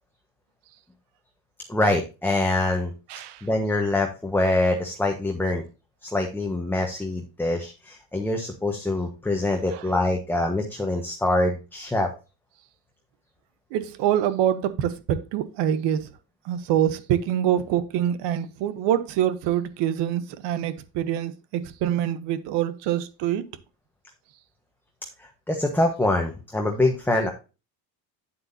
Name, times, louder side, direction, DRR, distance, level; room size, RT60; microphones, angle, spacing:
voice 1, 1.7-2.9 3.4-5.6 6.0-12.1 25.5-27.3, left 2 dB, 5° left, 1.2 m, -24 dB
voice 2, 3.1-3.4 9.7-9.8 13.7-16.1 16.4-23.5, right 10 dB, 85° right, 1.1 m, -25 dB
9.0 x 7.9 x 2.7 m
cardioid pair, 115°, 41 cm